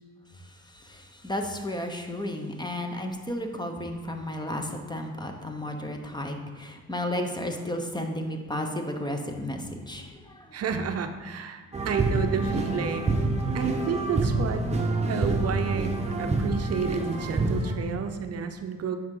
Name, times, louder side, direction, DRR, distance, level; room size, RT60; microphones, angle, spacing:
voice 1, 0.7-10.5, left 1 dB, 15° left, 4 dB, 0.8 m, -33 dB
voice 2, 10.5-13.1 13.5-14.6 15.1-15.9 16.2-19.0, right 6 dB, 55° right, 6 dB, 0.6 m, -31 dB
sound 1, 11.7-17.7, right 2 dB, 20° right, 0.9 m, -27 dB
9.2 x 5.0 x 3.8 m, 1.3 s
cardioid pair, 90°, 30 cm